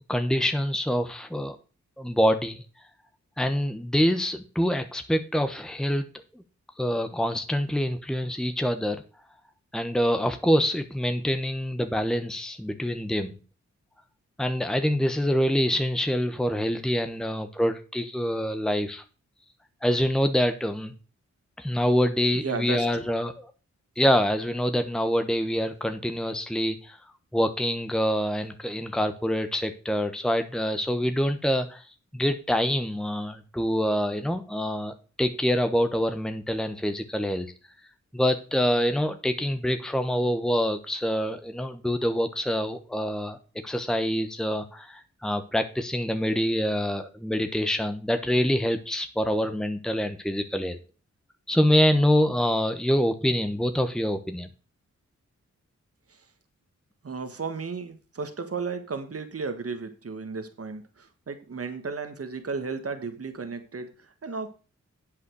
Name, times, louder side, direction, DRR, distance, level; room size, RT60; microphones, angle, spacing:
voice 1, 0.1-1.6 2.0-2.6 3.4-6.0 6.3-6.4 6.8-9.0 9.7-13.4 14.4-19.0 19.8-20.9 21.6-23.5 24.0-27.0 27.3-31.9 32.1-37.5 38.1-43.4 43.6-50.8 51.5-54.5, equal, ahead, 8 dB, 1.1 m, -25 dB
voice 2, 22.3-23.0 56.1-56.3 57.0-64.5, right 4 dB, 50° right, 8 dB, 1.5 m, -34 dB
8.2 x 5.7 x 6.3 m, 0.35 s
cardioid pair, 45°, 30 cm